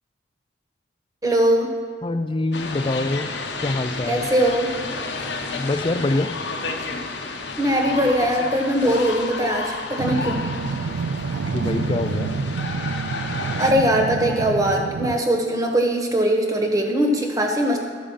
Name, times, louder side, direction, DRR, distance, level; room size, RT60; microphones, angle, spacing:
voice 1, 1.2-1.7 4.1-4.7 7.6-10.4 13.6-17.8, right 1 dB, 20° right, 2 dB, 1.1 m, -21 dB
voice 2, 2.0-3.3 3.6-4.3 5.6-6.3 11.5-12.5, left 2 dB, 25° left, 10 dB, 0.4 m, -25 dB
sound 1, 2.5-13.7, left 3 dB, 65° left, 0.9 m, -31 dB
sound 2, 10.0-15.2, right 4 dB, 80° right, 0.3 m, -28 dB
12.5 x 5.1 x 7.2 m, 2.2 s
head